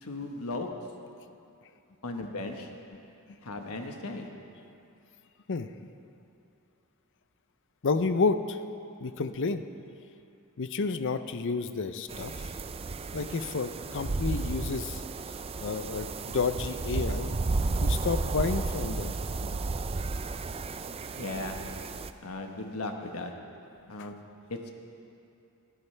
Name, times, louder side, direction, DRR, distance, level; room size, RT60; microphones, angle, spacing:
voice 1, 0.0-0.7 2.0-2.7 3.4-4.3 21.2-21.6 22.2-23.3 23.9-24.2 24.5-24.7, left 2 dB, 85° left, 3 dB, 1.3 m, -36 dB
voice 2, 7.8-8.6 9.0-9.6 10.6-12.3 13.1-15.0 15.6-19.2 19.4-19.6, left 4 dB, 55° left, 10 dB, 0.6 m, -30 dB
sound 1, 12.1-22.1, right 3 dB, 25° right, 0.4 m, -33 dB
20.5 x 13.5 x 3.3 m, 2.7 s
head